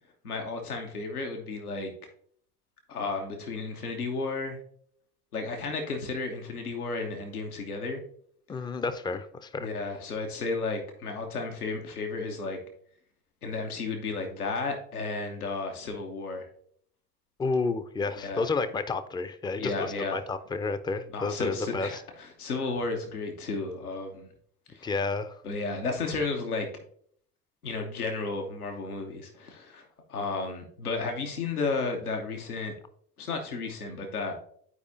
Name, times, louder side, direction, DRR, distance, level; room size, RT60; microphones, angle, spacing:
voice 1, 0.2-1.9 2.9-4.6 5.3-8.0 9.6-12.6 13.4-16.4 18.2-18.5 19.6-20.2 21.1-24.3 24.7-24.9 25.4-26.7 27.6-32.7 33.2-34.4, left 3 dB, 80° left, 3 dB, 1.0 m, -33 dB
voice 2, 8.5-9.7 17.4-22.0 24.8-25.3, left 4 dB, 10° left, 11 dB, 0.5 m, -31 dB
11.0 x 4.8 x 2.6 m, 0.62 s
figure-of-eight pair, 65°, 44 cm